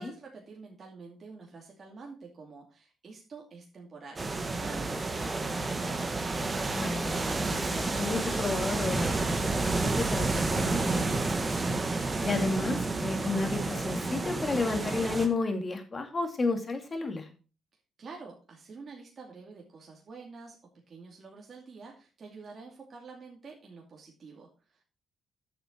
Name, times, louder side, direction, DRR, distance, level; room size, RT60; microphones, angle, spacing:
voice 1, 0.0-6.1 18.0-20.6 20.9-24.9, right 4 dB, 50° right, -1 dB, 2.5 m, -48 dB
sound 1, 4.2-15.3, right 3 dB, 30° right, 1.7 m, -30 dB
voice 2, 6.7-11.8 12.2-17.3, left 3 dB, 35° left, 5 dB, 2.4 m, -32 dB
9.6 x 7.0 x 4.5 m, 0.35 s
cardioid pair, 75°, 0 cm